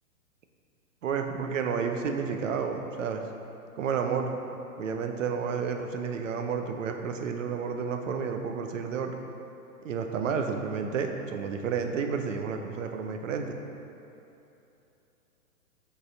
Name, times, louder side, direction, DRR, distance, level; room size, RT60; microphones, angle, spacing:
voice 1, 1.0-3.2 3.8-4.3 4.8-9.1 9.8-13.6, right 6 dB, 55° right, 5 dB, 0.7 m, -31 dB
7.8 x 4.1 x 4.0 m, 2.9 s
hypercardioid pair, 150°, 45 cm